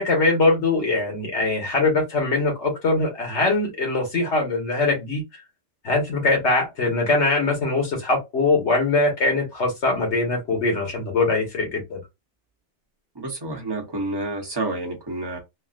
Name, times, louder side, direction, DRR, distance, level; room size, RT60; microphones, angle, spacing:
voice 1, 0.0-5.4 5.8-12.0, left 3 dB, 80° left, 1.7 m, -22 dB
voice 2, 13.1-15.4, right 2 dB, 25° right, 0.9 m, -29 dB
4.0 x 2.0 x 2.4 m
omnidirectional pair, 1.2 m